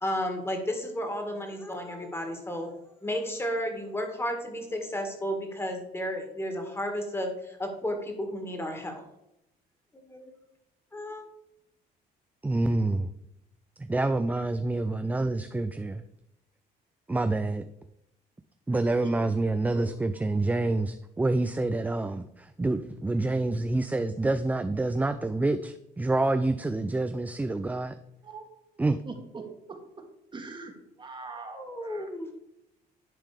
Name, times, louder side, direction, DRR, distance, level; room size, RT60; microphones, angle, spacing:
voice 1, 0.0-2.7 3.0-9.0 9.9-10.3 10.9-11.3 31.5-32.3, equal, 15° left, 4 dB, 1.9 m, -33 dB
voice 2, 12.4-13.1 13.8-16.0 17.1-17.6 18.7-27.9 28.8-29.0, right 2 dB, 10° right, 9 dB, 0.4 m, -27 dB
voice 3, 28.2-28.8 29.0-29.4 29.7-29.8 30.3-30.7 31.0-32.1, right 3 dB, 30° right, 4 dB, 1.6 m, -42 dB
10.5 x 3.8 x 5.0 m, 0.83 s
cardioid pair, 110°, 17 cm